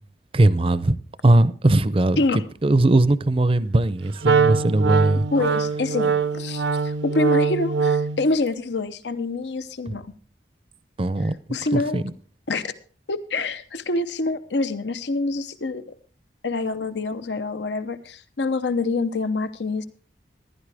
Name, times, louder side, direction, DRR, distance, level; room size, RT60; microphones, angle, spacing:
voice 1, 0.3-1.0 1.2-2.2 2.6-5.3 9.9-10.0 11.0-11.4 11.7-12.0, right 2 dB, 30° right, 0.5 m, -19 dB
Wind instrument woodwind instrument, 4.2-8.3, right 5 dB, 80° right, 0.7 m, -22 dB
voice 2, 5.3-10.1 11.5-12.0 12.5-12.7 13.1-15.8 16.4-19.9, left 3 dB, 85° left, 0.8 m, -26 dB
15.0 x 11.5 x 3.4 m
head